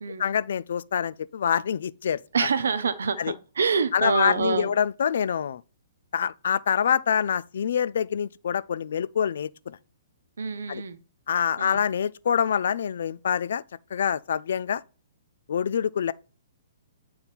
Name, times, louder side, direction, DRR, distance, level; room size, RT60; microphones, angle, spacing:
voice 1, 0.2-2.5 3.2-3.3 3.9-5.6 6.1-9.8 10.7-10.8 11.3-13.6 13.9-14.8 15.5-16.1, left 8 dB, 65° left, 0.3 m, -26 dB
voice 2, 2.3-4.7 10.4-11.0 11.6-11.8, right 5 dB, 75° right, 0.8 m, -26 dB
8.1 x 3.8 x 4.3 m
hypercardioid pair, 130°, 0 cm